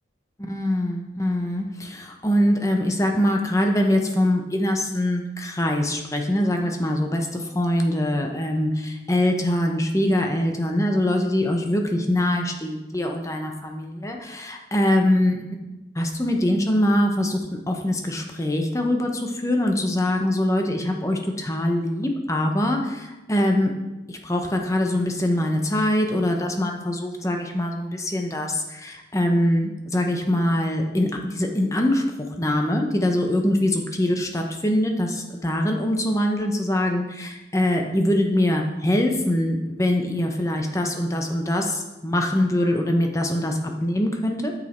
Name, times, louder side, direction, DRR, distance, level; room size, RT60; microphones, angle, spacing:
voice 1, 0.4-15.4 16.0-17.4 17.7-23.7 24.1-44.5, left 1 dB, 15° left, 3 dB, 0.8 m, -23 dB
8.9 x 6.5 x 4.4 m, 1.1 s
head